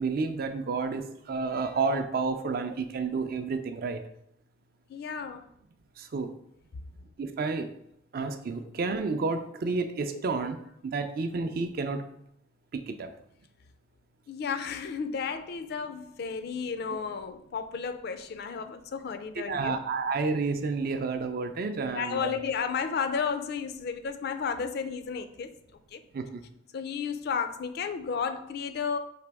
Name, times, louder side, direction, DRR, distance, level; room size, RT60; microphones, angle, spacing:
voice 1, 0.0-4.0 6.0-6.3 7.2-7.7 8.1-10.6 10.8-12.0 12.7-13.1 19.5-22.3 26.1-26.4, right 4 dB, 55° right, 0.4 m, -30 dB
voice 2, 4.9-5.5 14.3-19.8 21.9-25.5 25.9-26.0 26.7-29.0, left 6 dB, 55° left, 0.4 m, -33 dB
4.9 x 2.9 x 3.4 m
head